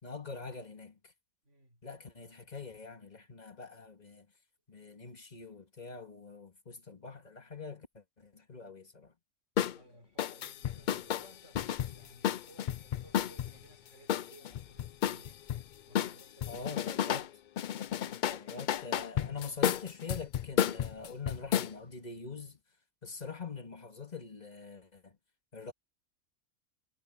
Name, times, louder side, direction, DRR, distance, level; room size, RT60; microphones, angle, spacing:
voice 1, 0.0-1.0 1.8-4.3 4.7-9.1 16.5-17.3 18.3-22.6 23.0-25.1 25.5-25.7, left 5 dB, 35° left, 2.1 m, -44 dB
voice 2, 1.4-1.8 9.7-15.4 15.8-17.3 17.7-18.3, right 1 dB, 70° right, 4.7 m, -60 dB
sound 1, 9.6-9.8 10.2-13.5 14.1-15.6 15.9-17.3 17.6-21.7, left 10 dB, 65° left, 0.5 m, -32 dB
omnidirectional pair, 1.3 m